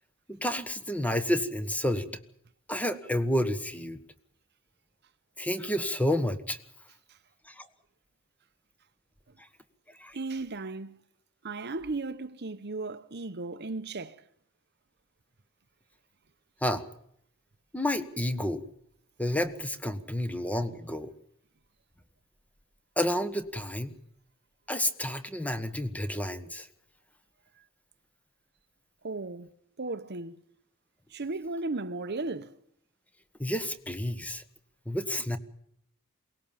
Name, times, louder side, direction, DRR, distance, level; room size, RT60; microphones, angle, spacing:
voice 1, 0.3-2.0 2.7-4.0 5.4-6.6 7.5-7.6 10.0-10.1 16.6-16.8 17.7-18.6 19.2-21.1 23.0-23.9 24.7-26.7 33.4-34.4 34.9-35.4, left 1 dB, 5° left, 1.4 m, -30 dB
voice 2, 10.1-11.0 11.4-14.2 29.0-29.5 29.8-30.4 31.1-32.6, right 3 dB, 50° right, 1.0 m, -35 dB
22.5 x 19.5 x 7.3 m
head